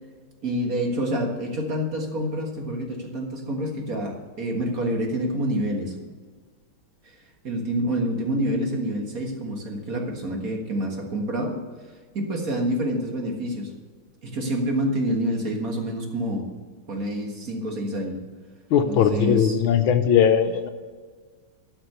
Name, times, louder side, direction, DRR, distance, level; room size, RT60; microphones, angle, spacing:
voice 1, 0.4-5.9 7.4-11.6 12.1-13.7 14.2-16.5 16.9-18.2 18.9-19.6, right 1 dB, 45° right, 1 dB, 1.9 m, -27 dB
voice 2, 18.7-20.7, left 8 dB, 75° left, 9 dB, 1.5 m, -19 dB
12.5 x 5.9 x 6.6 m, 1.5 s
omnidirectional pair, 2.3 m